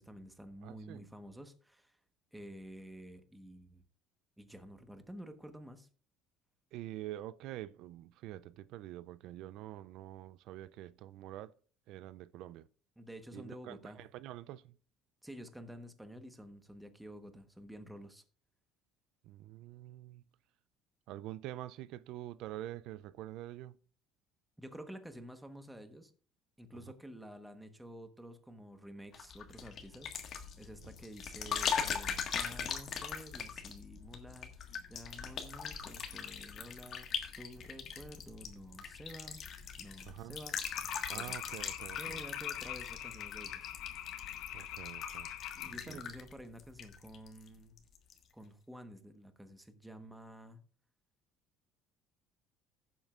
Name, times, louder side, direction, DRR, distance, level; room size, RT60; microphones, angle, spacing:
voice 1, 0.0-2.0 2.3-3.8 4.4-5.9 13.0-14.0 15.2-18.2 24.6-26.1 26.6-37.1 37.4-39.4 39.8-40.6 41.1-41.4 42.0-43.7 45.6-47.8 48.3-50.6, equal, 5° right, 1.1 m, -50 dB
voice 2, 0.6-1.1 6.7-11.5 11.9-12.7 13.3-14.7 19.2-20.2 21.1-23.8 40.1-40.4 41.1-42.2 44.5-45.3 45.7-46.0, right 14 dB, 70° right, 0.3 m, -46 dB
sound 1, 29.1-47.5 47.8-48.2, left 7 dB, 45° left, 1.5 m, -41 dB
sound 2, 40.7-45.7, left 12 dB, 75° left, 0.9 m, -44 dB
16.5 x 7.3 x 2.4 m
cardioid pair, 130°, 0 cm